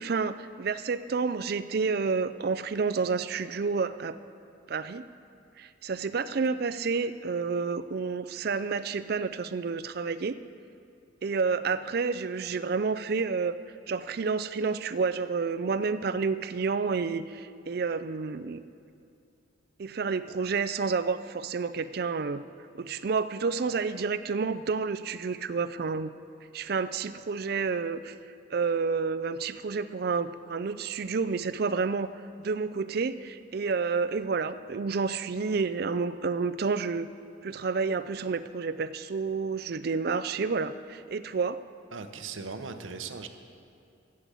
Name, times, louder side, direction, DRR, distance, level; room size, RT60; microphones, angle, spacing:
voice 1, 0.0-4.2 4.7-5.0 5.6-10.3 11.2-13.5 13.9-18.6 19.8-22.4 22.8-26.1 26.5-28.1 28.5-32.1 32.4-37.1 37.4-41.6, right 4 dB, 50° right, 12 dB, 0.4 m, -29 dB
voice 2, 41.9-43.3, right 4 dB, 90° right, 7 dB, 0.8 m, -38 dB
11.5 x 7.8 x 8.2 m, 2.6 s
head